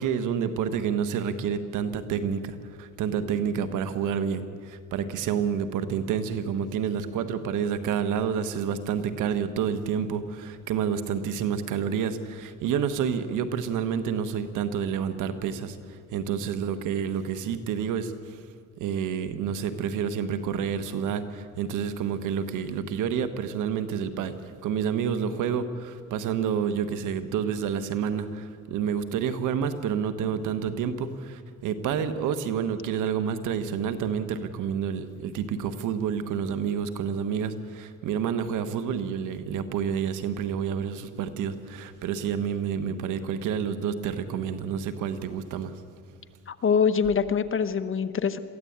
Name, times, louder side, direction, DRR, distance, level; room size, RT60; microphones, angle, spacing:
voice 1, 0.0-18.4 18.8-45.7, right 7 dB, 90° right, 11 dB, 1.4 m, -29 dB
voice 2, 46.5-48.4, left 6 dB, 45° left, 10 dB, 1.2 m, -24 dB
22.5 x 14.5 x 8.8 m, 2.1 s
cardioid pair, 90°, 30 cm